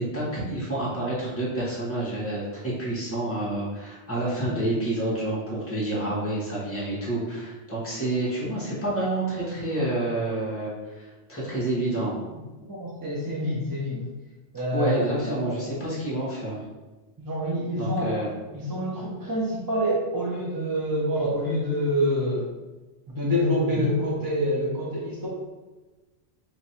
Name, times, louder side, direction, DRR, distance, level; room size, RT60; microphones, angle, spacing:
voice 1, 0.0-12.1 14.7-16.6 17.8-18.3, right 1 dB, 10° left, -7 dB, 1.1 m, -28 dB
voice 2, 12.6-14.0 14.5-15.8 17.2-18.2 18.5-22.5 23.1-25.3, equal, 25° right, -5 dB, 0.5 m, -27 dB
3.0 x 2.6 x 4.3 m, 1.2 s
omnidirectional pair, 1.2 m